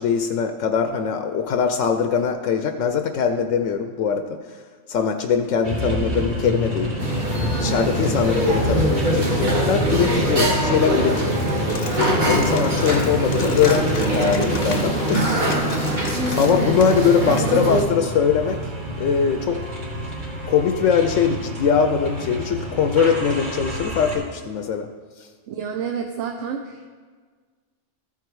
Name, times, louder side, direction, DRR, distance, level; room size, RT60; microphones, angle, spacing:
voice 1, 0.0-4.6 4.9-6.9 7.6-11.3 12.2-15.3 16.4-18.6 19.0-19.6 20.5-24.9 25.2-25.3, left 7 dB, 80° left, 6 dB, 0.9 m, -21 dB
sound 1, 5.6-24.2, left 1 dB, 55° right, 2.6 m, -29 dB
sound 2, 7.0-17.8, right 1 dB, 40° right, 1.4 m, -23 dB
Coin (dropping), 11.2-17.4, left 5 dB, 50° left, 0.8 m, -37 dB
voice 2, 25.5-26.9, right 7 dB, 75° right, 3 dB, 1.0 m, -29 dB
14.5 x 4.8 x 4.6 m, 1.5 s
omnidirectional pair, 1.3 m